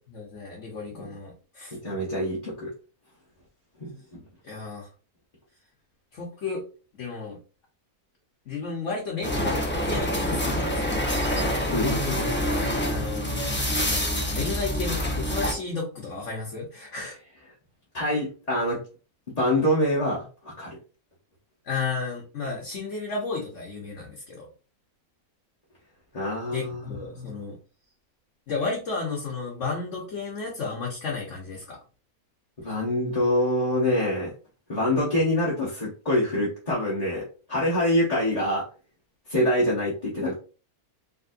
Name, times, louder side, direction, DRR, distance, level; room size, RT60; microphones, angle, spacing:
voice 1, 0.1-1.8 4.4-4.9 6.1-6.7 7.0-7.4 8.5-10.9 12.8-13.4 13.8-17.2 21.6-24.5 26.5-27.6 28.5-31.8, left 4 dB, 55° left, -2 dB, 1.3 m, -33 dB
voice 2, 1.8-2.7 3.8-4.2 11.7-12.5 17.9-18.8 19.4-20.8 26.1-27.4 32.6-34.3 34.7-38.7 39.3-40.3, left 1 dB, 30° left, -6 dB, 1.0 m, -25 dB
sound 1, 9.2-15.5, equal, 10° left, 0.6 m, -26 dB
4.2 x 3.3 x 2.6 m, 0.35 s
omnidirectional pair, 1.6 m